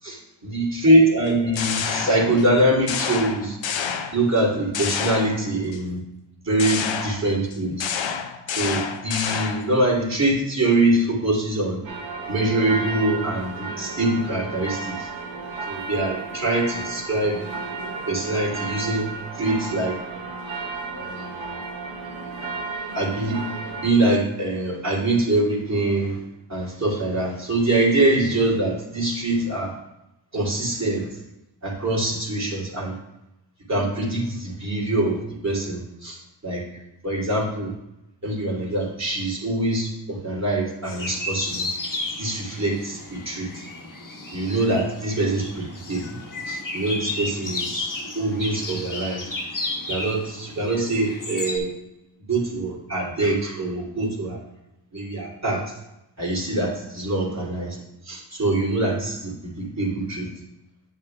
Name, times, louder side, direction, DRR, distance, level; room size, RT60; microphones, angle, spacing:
voice 1, 0.0-3.6 4.1-6.0 6.4-7.9 8.5-11.8 12.3-15.1 15.7-17.4 18.1-20.0 20.9-21.5 22.9-26.2 26.5-29.7 30.3-31.1 31.6-33.0 33.7-36.7 37.0-37.7 38.2-41.7 42.2-43.7 44.3-46.1 46.5-49.3 49.9-51.7 52.3-54.4 54.9-55.6 56.2-57.8 58.0-60.3, right 2 dB, 35° right, -4 dB, 2.8 m, -24 dB
sound 1, 1.3-2.5 2.9-4.4 4.7-5.8 6.6-9.8, left 7 dB, 80° left, 0.7 m, -29 dB
sound 2, 11.8-23.9, right 3 dB, 85° right, 1.2 m, -33 dB
sound 3, 40.8-51.6, left 2 dB, 45° left, 1.4 m, -33 dB
8.7 x 7.1 x 2.3 m, 0.89 s
cardioid pair, 45°, 45 cm